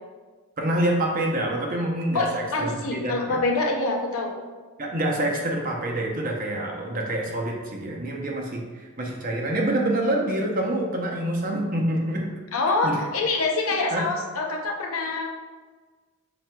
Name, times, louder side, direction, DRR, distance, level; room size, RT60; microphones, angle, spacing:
voice 1, 0.6-3.4 4.8-12.3 12.8-13.0 13.9-14.1, right 1 dB, 40° right, 0 dB, 0.7 m, -26 dB
voice 2, 2.1-4.4 12.5-15.3, left 3 dB, 70° left, 2 dB, 0.6 m, -25 dB
5.8 x 4.1 x 2.2 m, 1.4 s
head